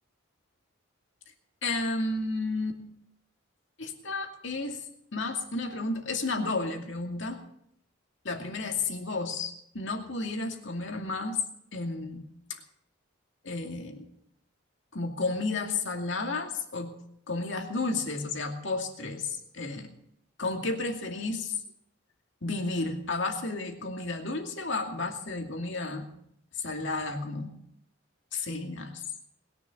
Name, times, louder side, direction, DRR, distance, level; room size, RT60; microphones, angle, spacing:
voice 1, 1.6-2.8 3.8-4.8 5.1-7.4 8.2-11.4 11.7-12.3 13.4-14.0 14.9-17.0 17.3-19.9 20.4-21.5 22.4-26.1 26.6-27.6 28.3-29.0, left 3 dB, 60° left, 3 dB, 2.4 m, -32 dB
21.0 x 7.0 x 8.5 m, 0.71 s
head